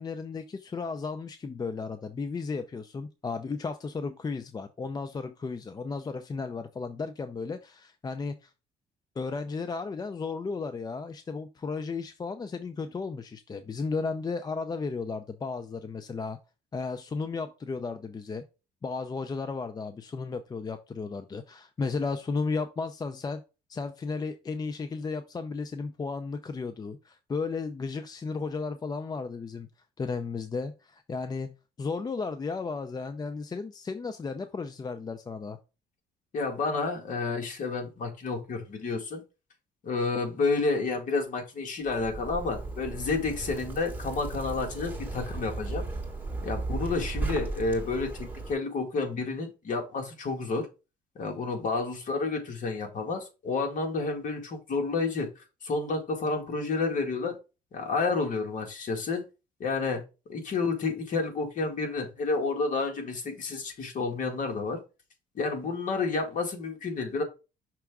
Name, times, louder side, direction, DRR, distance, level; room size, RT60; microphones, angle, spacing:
voice 1, 0.0-8.5 9.2-16.4 16.7-18.4 18.8-23.4 23.7-29.7 30.0-35.6, left 4 dB, 25° left, 0.5 m, -34 dB
voice 2, 36.3-39.2 39.8-45.9 46.4-50.7 51.2-57.4 57.7-59.2 59.6-60.0 60.3-64.8 65.4-67.2, left 3 dB, 50° left, 2.0 m, -30 dB
Zipper (clothing), 41.9-48.5, right 3 dB, 10° right, 2.3 m, -35 dB
6.0 x 3.4 x 4.7 m
cardioid pair, 110°, 17 cm